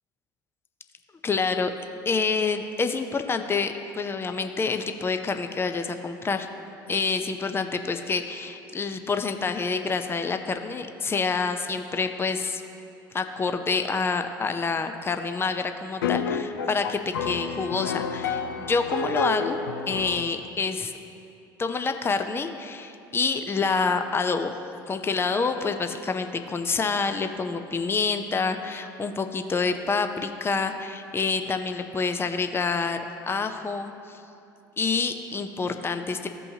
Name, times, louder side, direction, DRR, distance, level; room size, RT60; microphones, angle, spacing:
voice 1, 1.2-1.7 2.1-6.5 6.9-12.6 13.1-20.9 21.6-24.5 24.9-34.2 34.8-36.3, left 4 dB, 20° left, 7 dB, 0.6 m, -27 dB
sound 1, 16.0-20.4, left 5 dB, 85° left, 0.4 m, -30 dB
15.0 x 5.4 x 2.8 m, 2.7 s
hypercardioid pair, 70°, 11 cm